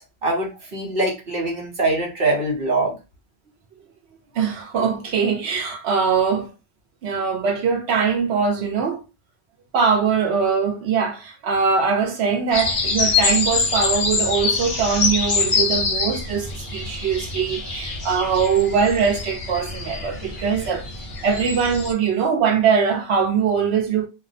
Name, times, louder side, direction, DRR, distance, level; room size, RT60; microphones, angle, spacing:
voice 1, 0.2-3.0, right 2 dB, 60° right, 1.0 m, -23 dB
voice 2, 4.3-6.5 7.0-9.0 9.7-20.8 21.2-24.1, right 6 dB, 85° right, 0.9 m, -22 dB
sound 1, 12.5-21.9, left 4 dB, 55° left, 0.8 m, -25 dB
2.4 x 2.0 x 2.6 m
omnidirectional pair, 1.1 m